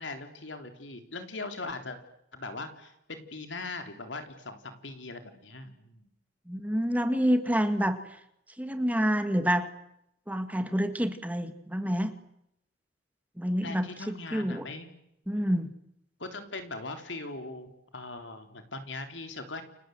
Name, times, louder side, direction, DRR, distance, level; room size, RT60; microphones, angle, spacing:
voice 1, 0.0-2.0 2.3-6.1 13.6-14.9 16.2-19.6, left 3 dB, 80° left, 7 dB, 3.6 m, -40 dB
voice 2, 6.5-8.0 8.6-9.7 10.3-12.1 13.4-14.7 15.3-15.7, equal, 10° right, 9 dB, 1.8 m, -28 dB
29.5 x 25.5 x 7.9 m, 0.81 s
head